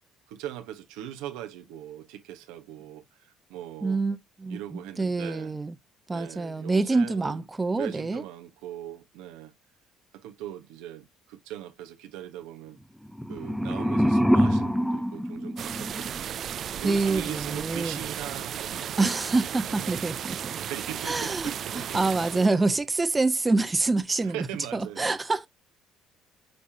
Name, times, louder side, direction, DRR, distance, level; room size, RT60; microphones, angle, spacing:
voice 1, 0.3-4.0 4.5-5.5 6.1-7.4 7.7-9.5 10.1-12.8 13.3-16.4 16.8-19.2 20.6-22.0 22.3-22.7 24.2-25.2, right 11 dB, 90° right, 1.1 m, -40 dB
voice 2, 3.8-5.7 6.1-8.2 16.8-18.0 19.0-20.5 21.0-24.5 24.7-25.5, right 3 dB, 20° right, 1.0 m, -26 dB
sound 1, 13.1-16.2, equal, ahead, 0.7 m, -25 dB
sound 2, 15.6-22.5, right 9 dB, 55° right, 0.4 m, -35 dB
9.3 x 3.6 x 2.8 m
supercardioid pair, 90°, 0 cm